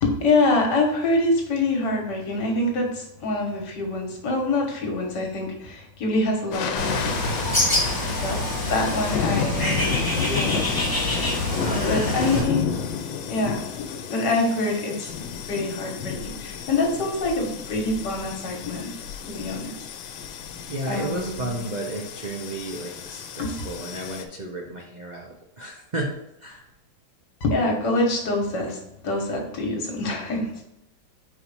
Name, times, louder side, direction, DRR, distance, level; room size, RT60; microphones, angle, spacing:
voice 1, 0.0-7.2 8.2-8.4 8.7-9.9 10.3-10.8 11.9-12.7 13.3-13.7 14.1-15.1 15.5-18.9 19.2-19.7 20.9-21.6 23.4-23.6 27.4-28.8 29.0-30.5, left 2 dB, 65° left, 1 dB, 1.9 m, -25 dB
sound 1, 6.5-24.2, left 7 dB, 90° left, 1.5 m, -32 dB
Bird, 6.8-12.4, left 2 dB, 15° left, 0.9 m, -26 dB
voice 2, 20.7-25.3 25.6-26.1 26.4-26.6, right 1 dB, 60° right, -1 dB, 0.4 m, -32 dB
4.6 x 4.6 x 5.4 m, 0.85 s
omnidirectional pair, 2.0 m